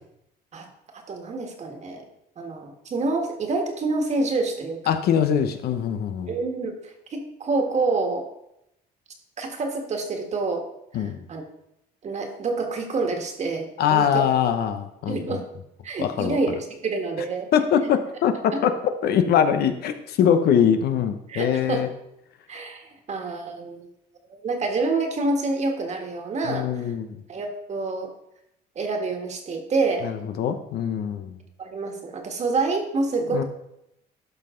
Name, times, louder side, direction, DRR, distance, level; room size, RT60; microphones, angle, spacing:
voice 1, 1.1-2.1 2.4-4.9 6.3-8.3 9.4-10.7 10.9-11.4 12.0-14.3 15.1-15.4 15.8-17.5 17.8-17.9 18.5-18.6 21.3-21.8 22.5-23.9 24.3-26.9 27.3-28.1 28.7-30.1 31.6-33.4, right 3 dB, 40° right, 4 dB, 1.7 m, -27 dB
voice 2, 4.9-6.3 10.9-11.2 13.8-15.4 16.0-16.4 17.5-21.9 26.5-27.2 30.0-31.4 33.3-33.4, left 8 dB, 70° left, 8 dB, 0.9 m, -23 dB
12.0 x 5.7 x 3.8 m, 0.82 s
cardioid pair, 110°, 17 cm